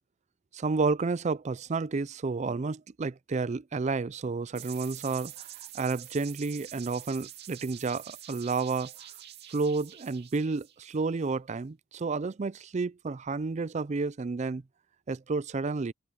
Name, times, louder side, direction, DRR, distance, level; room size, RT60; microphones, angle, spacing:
voice 1, 0.5-5.5 5.7-9.1 9.5-14.6 15.1-15.9, right 4 dB, 35° right, 0.4 m, -31 dB
sound 1, 4.6-11.3, right 12 dB, 55° right, 2.2 m, -46 dB
head